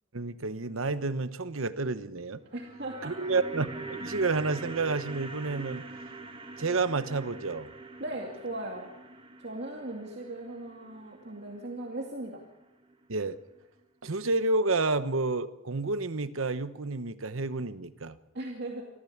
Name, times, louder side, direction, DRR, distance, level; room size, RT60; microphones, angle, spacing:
voice 1, 0.1-2.4 3.0-5.8 6.6-7.7 13.1-13.4 14.0-18.2, right 3 dB, 85° right, 12 dB, 1.1 m, -30 dB
sound 1, 2.4-12.6 12.9-13.0, right 3 dB, 25° right, 1.7 m, -44 dB
voice 2, 2.5-3.1 8.0-8.9 9.4-12.4 18.3-18.8, right 1 dB, 55° right, 0 dB, 2.5 m, -38 dB
26.0 x 14.5 x 7.3 m, 1.0 s
head